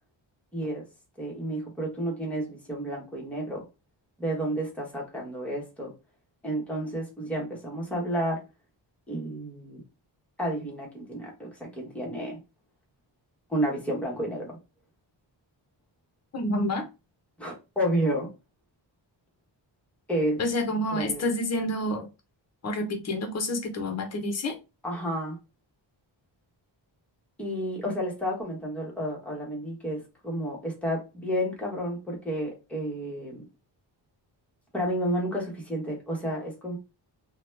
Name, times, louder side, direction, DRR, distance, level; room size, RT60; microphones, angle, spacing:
voice 1, 0.5-0.8 1.2-3.6 4.2-5.9 6.4-8.4 9.1-9.8 10.4-12.4 13.5-14.6 17.4-18.3 20.1-20.4 20.9-21.2 24.8-25.4 27.4-33.4 34.7-36.8, right 1 dB, 5° left, -3 dB, 1.0 m, -31 dB
voice 2, 16.3-16.9 20.4-22.1 22.6-24.6, left 1 dB, 35° left, 5 dB, 0.7 m, -28 dB
2.8 x 2.2 x 3.2 m, 0.27 s
wide cardioid pair, 150°, 46 cm